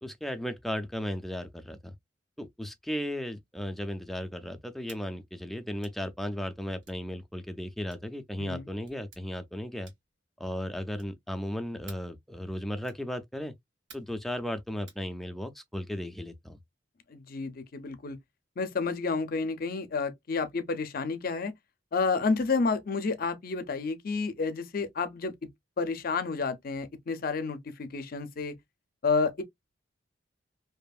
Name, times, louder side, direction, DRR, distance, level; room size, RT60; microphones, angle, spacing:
voice 1, 0.0-2.0 2.4-9.9 10.4-13.5 13.9-16.6, equal, ahead, 0.4 m, -35 dB
sound 1, 4.8-5.1 5.8-6.0 6.8-7.0 7.9-8.1 8.8-9.2 9.8-10.2 10.9-11.2 11.9-12.1 12.8-13.1 13.9-14.2 14.9-15.0, right 5 dB, 85° right, 1.4 m, -53 dB
voice 2, 8.4-8.7 17.1-18.2 18.6-21.5 21.9-25.5 25.8-28.6 29.0-29.4, left 4 dB, 50° left, 0.5 m, -30 dB
2.7 x 2.5 x 2.3 m
head